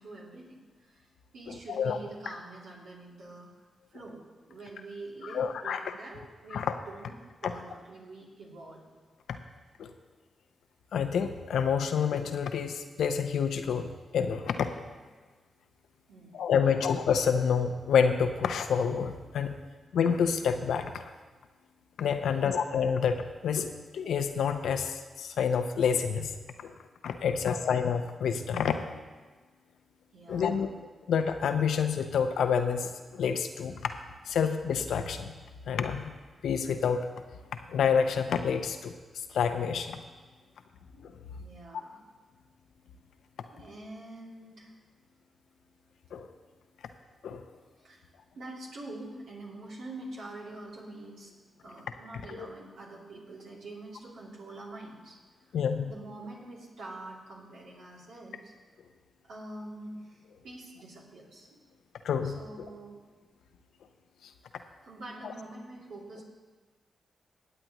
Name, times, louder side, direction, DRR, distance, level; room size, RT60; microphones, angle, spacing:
voice 1, 0.0-3.5 3.9-4.2 4.5-7.1 7.4-8.8 16.1-16.8 22.2-22.6 27.2-27.7 30.1-30.7 40.4-40.5 41.4-42.0 43.5-44.7 47.8-48.1 48.3-51.3 51.6-55.6 55.9-58.5 59.2-61.6 62.2-63.0 64.8-66.2, right 2 dB, 80° right, -4 dB, 2.6 m, -45 dB
voice 2, 5.3-5.9 6.5-6.8 9.8-9.9 10.9-14.7 16.3-19.5 19.9-21.1 22.0-26.3 26.6-26.7 27.0-28.9 30.3-30.7 31.1-33.8 34.3-35.3 35.7-36.1 36.4-37.1 37.7-38.9 39.3-40.0 41.0-41.1 46.1-46.3 47.2-47.4 52.3-52.5 55.5-55.9 62.0-62.7 64.2-64.3, left 7 dB, 80° left, 7 dB, 0.7 m, -28 dB
19.0 x 7.9 x 3.0 m, 1.3 s
supercardioid pair, 40°, 0 cm